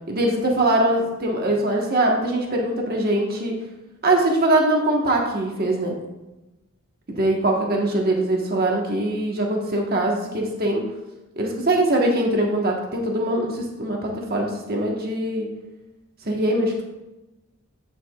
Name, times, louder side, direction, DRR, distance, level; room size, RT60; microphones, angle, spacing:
voice 1, 0.1-3.6 4.0-6.0 7.1-10.8 11.4-15.5 16.2-16.8, right 1 dB, 50° right, 0 dB, 1.3 m, -22 dB
8.4 x 7.7 x 2.4 m, 1.0 s
head